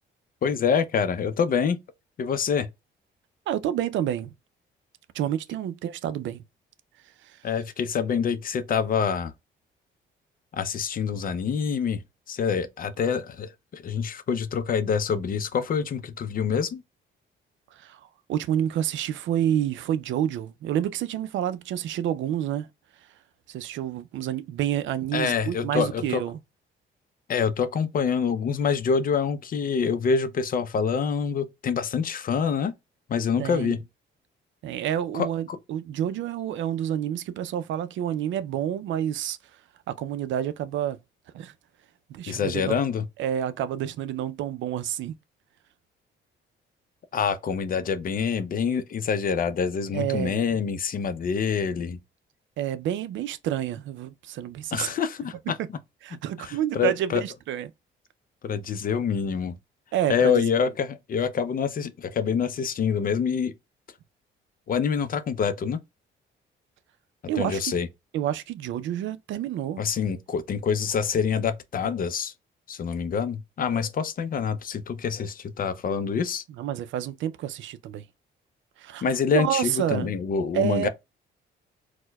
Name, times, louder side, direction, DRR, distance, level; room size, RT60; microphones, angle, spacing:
voice 1, 0.4-1.8 2.2-2.7 7.4-9.3 10.5-12.0 12.3-16.8 25.1-26.2 27.3-32.7 33.1-33.8 35.1-35.6 42.3-43.1 47.1-52.0 54.7-55.8 56.4-57.2 58.4-59.5 60.1-63.5 64.7-65.8 67.4-67.9 69.8-72.3 72.7-76.4 79.0-80.9, left 6 dB, 45° left, 0.5 m, -26 dB
voice 2, 3.5-4.3 5.1-6.4 7.2-7.4 17.7-18.0 18.3-22.7 23.5-26.4 33.4-33.8 34.6-39.4 39.9-41.0 41.3-41.5 42.1-42.8 43.2-45.1 49.9-50.4 52.6-54.9 56.0-57.7 59.9-60.4 67.3-67.7 68.1-69.8 76.6-78.0 78.8-79.0 79.3-80.1 80.5-80.9, right 10 dB, 75° right, 0.4 m, -29 dB
4.4 x 2.1 x 2.2 m
cardioid pair, 90°, 20 cm